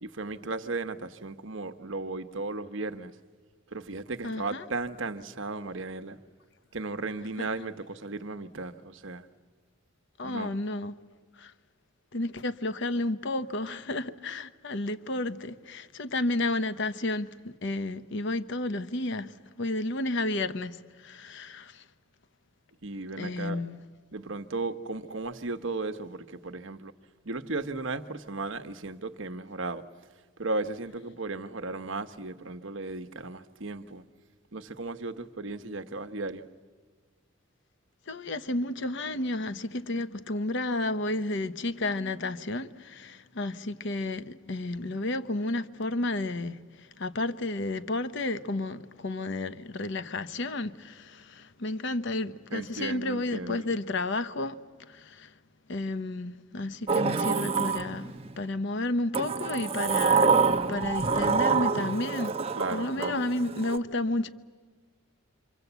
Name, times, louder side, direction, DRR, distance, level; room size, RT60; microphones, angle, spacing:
voice 1, 0.0-3.2 3.7-6.2 6.7-9.3 10.2-10.5 22.8-23.6 24.1-26.9 27.2-29.9 30.4-34.0 34.5-36.5 52.5-53.7 62.5-63.2, right 3 dB, 60° right, 1.0 m, -35 dB
voice 2, 4.2-4.6 7.4-7.5 10.2-10.9 11.4-11.5 12.1-19.3 19.6-21.8 23.2-23.8 38.1-46.6 47.0-54.6 54.9-55.3 55.7-60.4 60.7-62.3 62.7-64.3, left 2 dB, 60° left, 0.9 m, -32 dB
Sliding door, 56.9-58.4 59.1-63.8, right 5 dB, 30° right, 0.8 m, -26 dB
27.5 x 25.5 x 8.1 m
head